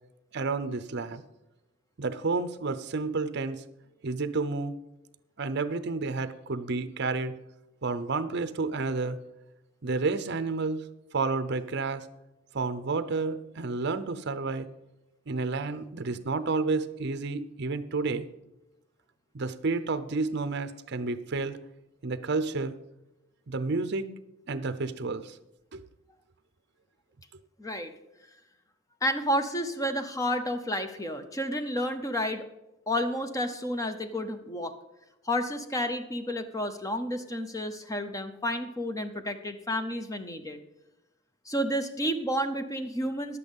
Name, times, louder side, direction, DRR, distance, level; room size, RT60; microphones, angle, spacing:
voice 1, 0.3-1.2 2.0-3.6 4.0-4.7 5.4-7.4 7.8-9.2 9.8-10.8 11.1-12.1 12.5-14.7 15.3-18.3 19.3-21.6 22.0-22.7 23.5-24.1 24.5-25.4 25.7-25.8, right 3 dB, 50° right, 12 dB, 0.6 m, -30 dB
voice 2, 27.6-27.9 29.0-32.5 32.9-34.7 35.2-40.6 41.5-43.4, equal, 15° left, 8 dB, 0.7 m, -31 dB
11.0 x 8.3 x 5.3 m, 0.97 s
head